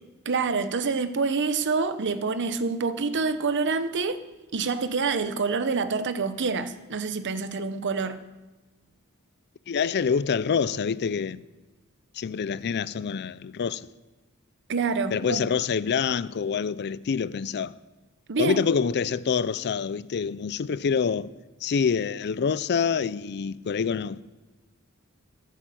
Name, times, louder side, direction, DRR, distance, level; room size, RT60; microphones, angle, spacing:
voice 1, 0.2-4.2 4.5-8.2 14.7-15.4 18.3-18.6, right 4 dB, 55° right, 0.8 m, -27 dB
voice 2, 9.7-11.4 12.1-13.9 15.1-17.8 18.4-21.3 21.6-24.2, left 6 dB, 50° left, 0.4 m, -26 dB
13.5 x 8.3 x 7.7 m
head